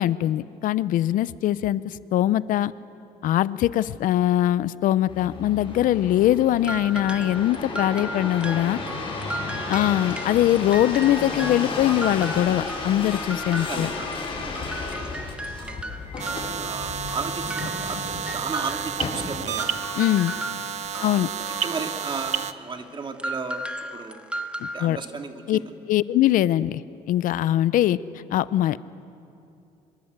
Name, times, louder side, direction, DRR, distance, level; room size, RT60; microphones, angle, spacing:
voice 1, 0.0-2.7 3.2-8.8 9.7-13.9 20.0-20.3 21.0-21.3 24.6-25.0 25.5-25.6 25.9-26.8 27.1-28.0 28.3-28.8, left 13 dB, 70° left, 17 dB, 0.7 m, -22 dB
sound 1, 5.1-19.6 20.2-20.8, left 3 dB, 40° left, 6.9 m, -33 dB
sound 2, 6.6-14.3 14.5-22.1 23.2-24.9, right 1 dB, 5° right, 1.4 m, -36 dB
voice 2, 9.2-9.9 13.6-16.0 16.5-19.8 20.9-21.1 21.6-23.7 23.9-24.2 24.7-25.7, right 4 dB, 35° right, 4 dB, 2.5 m, -35 dB
sound 3, 16.2-22.5, right 8 dB, 50° right, 1.1 m, -31 dB
26.0 x 23.5 x 8.2 m, 2.7 s
cardioid pair, 90°, 15 cm